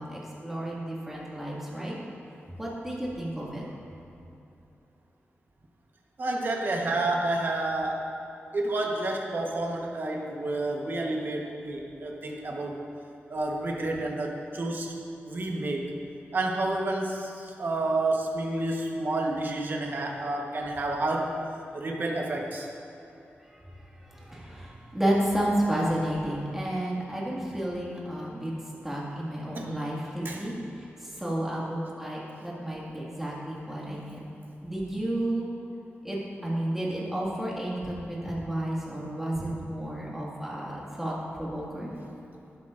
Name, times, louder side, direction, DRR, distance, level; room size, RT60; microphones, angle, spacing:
voice 1, 0.0-2.0 2.6-3.6 24.3-28.5 28.8-30.5 31.2-34.3 34.6-35.5 36.0-41.9, right 1 dB, 10° right, -5 dB, 1.9 m, -31 dB
voice 2, 6.2-8.0 8.5-12.8 13.3-14.9 15.2-15.9 16.3-21.4 21.7-22.7 29.5-29.7 30.2-30.5 39.4-39.5, right 2 dB, 50° right, 0 dB, 1.1 m, -30 dB
11.5 x 11.5 x 2.5 m, 2.9 s
wide cardioid pair, 120°, 4 cm